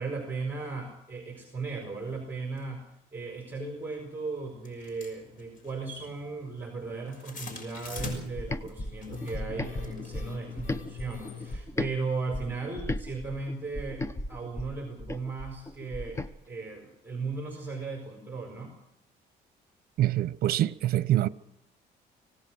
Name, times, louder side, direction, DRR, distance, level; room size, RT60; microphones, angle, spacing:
voice 1, 0.0-18.7, right 4 dB, 10° right, 4.9 m, -36 dB
sound 1, 2.6-2.7 3.6-3.7 4.6-11.6, left 5 dB, 55° left, 6.3 m, -43 dB
sound 2, 8.0-11.9 12.3-16.3, left 1 dB, 15° left, 0.9 m, -36 dB
voice 2, 20.0-21.3, right 13 dB, 65° right, 0.8 m, -25 dB
25.0 x 18.0 x 6.3 m
cardioid pair, 110°, 17 cm